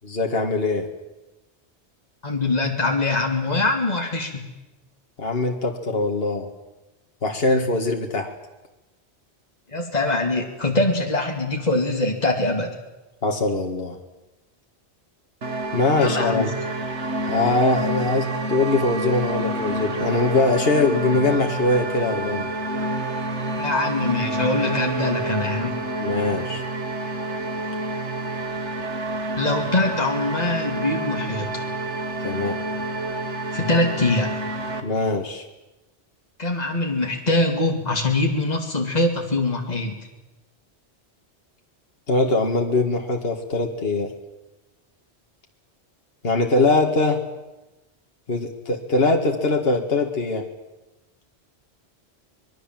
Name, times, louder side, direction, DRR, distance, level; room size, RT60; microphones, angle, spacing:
voice 1, 0.0-0.9 5.2-6.5 7.2-8.3 13.2-14.0 15.7-16.5 17.3-22.5 26.0-26.6 32.2-32.6 34.8-35.4 42.1-44.1 46.2-47.2 48.3-50.5, left 3 dB, 60° left, 2 dB, 2.2 m, -22 dB
voice 2, 2.2-4.4 9.7-12.8 16.0-16.5 23.6-25.7 29.4-31.6 33.5-34.3 36.4-39.9, left 2 dB, 35° left, 1 dB, 2.7 m, -23 dB
sound 1, 15.4-34.8, right 2 dB, 90° right, 2.2 m, -28 dB
25.5 x 21.5 x 7.6 m, 1.0 s
omnidirectional pair, 1.1 m